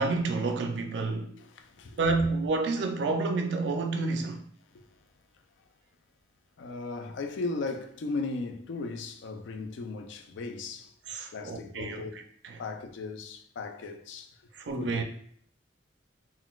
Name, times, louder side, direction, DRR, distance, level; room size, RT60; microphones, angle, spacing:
voice 1, 0.0-1.4 2.0-4.4 11.1-12.0 12.4-12.6 14.5-15.0, right 3 dB, 65° right, 0.4 m, -29 dB
voice 2, 1.4-2.0 4.7-5.1 6.6-10.9 11.3-12.1 12.6-14.4 14.8-15.0, left 3 dB, 75° left, 0.4 m, -37 dB
3.8 x 2.1 x 2.3 m
head